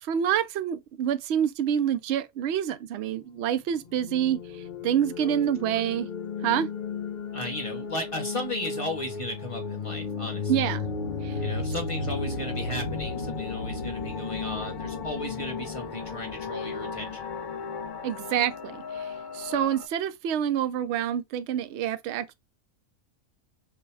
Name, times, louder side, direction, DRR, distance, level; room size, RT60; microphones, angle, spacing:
voice 1, 0.0-6.1 6.4-6.7 10.5-10.9 11.2-11.4 18.0-22.3, right 10 dB, 65° right, 0.8 m, -27 dB
sound 1, 3.8-19.9, left 4 dB, 45° left, 0.7 m, -34 dB
voice 2, 7.3-10.7 11.4-17.3, left 1 dB, 25° left, 1.3 m, -35 dB
6.1 x 2.2 x 3.3 m
omnidirectional pair, 1.4 m